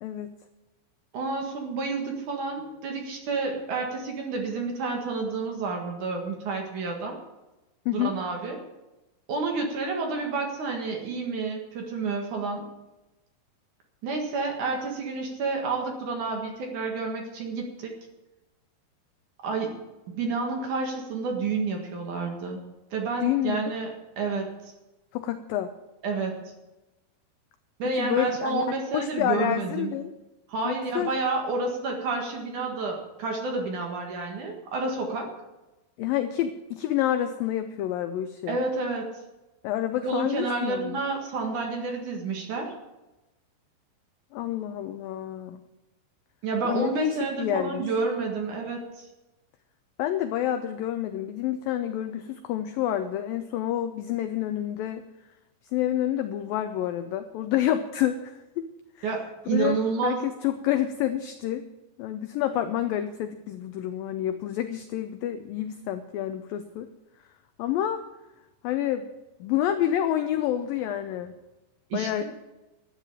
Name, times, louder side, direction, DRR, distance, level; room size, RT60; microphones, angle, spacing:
voice 1, 0.0-0.4 7.9-8.1 23.2-23.7 25.1-25.7 28.0-28.7 28.9-30.1 30.6-31.1 36.0-38.6 39.6-41.0 44.3-45.6 46.6-47.9 50.0-55.1 55.7-58.7 59.0-59.1 59.5-61.6 62.0-66.9 67.6-68.0 68.6-69.1 69.4-71.3 71.9-72.2, left 11 dB, 85° left, 9 dB, 2.0 m, -28 dB
voice 2, 1.1-7.2 7.9-8.6 9.3-12.7 14.0-17.9 19.4-19.8 20.1-22.6 22.9-24.7 26.0-26.4 27.8-29.9 30.5-35.3 38.5-39.1 40.0-42.7 46.4-49.1 59.0-60.2 71.9-72.2, right 4 dB, 55° right, 2 dB, 2.7 m, -30 dB
12.5 x 8.6 x 8.7 m, 1.0 s
omnidirectional pair, 4.9 m